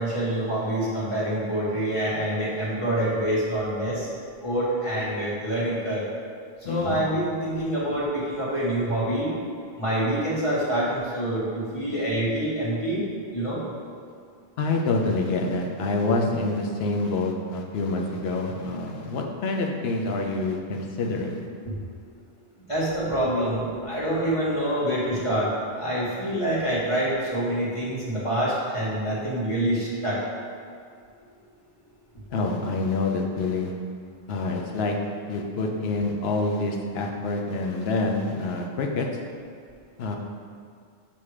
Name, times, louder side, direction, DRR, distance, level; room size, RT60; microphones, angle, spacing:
voice 1, 0.0-4.1 4.4-6.1 6.6-9.3 9.8-13.0 13.3-13.6 21.6-21.7 22.7-25.5 25.8-30.2, right 1 dB, 30° left, -8 dB, 1.5 m, -26 dB
voice 2, 6.7-7.0 14.6-21.5 32.3-33.7 34.3-35.0 35.3-39.1 40.0-40.2, left 3 dB, 75° left, 1 dB, 0.9 m, -27 dB
7.0 x 2.9 x 4.8 m, 2.3 s
omnidirectional pair, 1.1 m